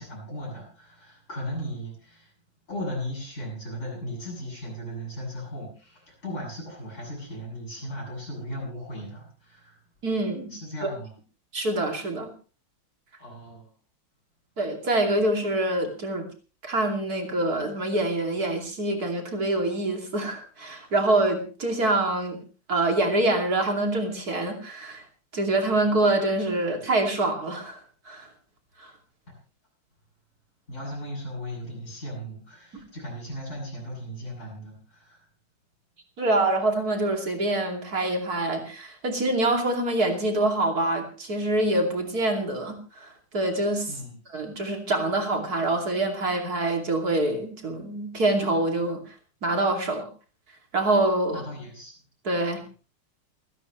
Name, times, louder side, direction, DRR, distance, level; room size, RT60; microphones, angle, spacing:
voice 1, 0.0-2.3 2.7-9.8 10.5-11.1 13.2-13.7 30.7-35.2 43.9-44.1 51.3-51.9, equal, 35° left, -4 dB, 8.3 m, -37 dB
voice 2, 10.0-10.5 10.8-10.9 11.5-12.3 14.6-16.3 16.6-22.4 22.7-25.0 25.3-27.8 28.0-28.3 28.8-28.9 36.2-43.9 44.3-49.0 49.4-50.1 50.7-51.4 52.2-52.6, right 2 dB, 45° right, 3 dB, 3.2 m, -25 dB
29.0 x 10.0 x 3.2 m, 0.37 s
omnidirectional pair, 2.3 m